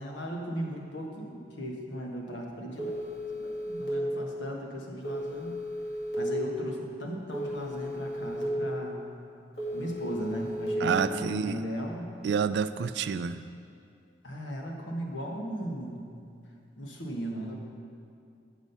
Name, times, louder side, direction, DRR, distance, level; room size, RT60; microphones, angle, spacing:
voice 1, 0.0-2.9 3.4-5.6 6.2-9.1 9.7-12.1 14.2-16.1 16.8-17.6, equal, 90° left, 0 dB, 1.3 m, -37 dB
Telephone, 2.8-3.9 5.0-6.1 7.3-8.4 9.6-10.7, left 1 dB, 65° left, 2.2 m, -36 dB
voice 2, 10.8-11.6 12.2-13.5, right 6 dB, 75° right, 14 dB, 0.3 m, -28 dB
8.3 x 6.2 x 5.4 m, 2.5 s
head